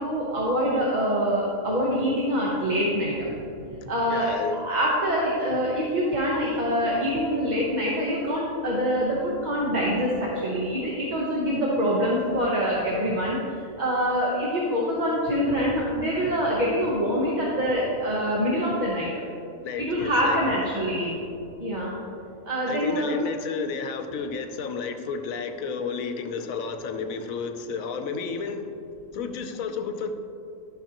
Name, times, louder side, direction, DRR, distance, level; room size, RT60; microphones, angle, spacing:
voice 1, 0.0-3.3 3.6-13.4 13.8-19.1 19.8-21.1 21.6-21.9 22.4-23.1, equal, 35° right, -5 dB, 1.0 m, -25 dB
voice 2, 4.1-4.6 19.6-20.6 22.7-28.7 29.1-30.1, left 5 dB, 85° left, 7 dB, 1.1 m, -32 dB
12.5 x 6.1 x 2.9 m, 2.7 s
omnidirectional pair, 1.4 m